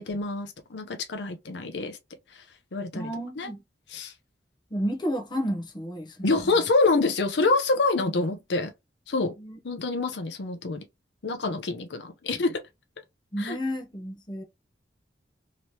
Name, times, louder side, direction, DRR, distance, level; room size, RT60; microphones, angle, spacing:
voice 1, 0.0-2.0 2.3-2.4 2.7-3.1 3.4-3.5 3.9-4.1 6.2-8.7 9.1-9.3 9.6-10.8 11.2-12.6 13.4-13.6, left 3 dB, 70° left, 0.6 m, -26 dB
voice 2, 2.9-3.6 4.7-6.2 9.4-9.6 13.3-14.4, equal, 25° left, 0.8 m, -31 dB
3.1 x 2.9 x 2.8 m
head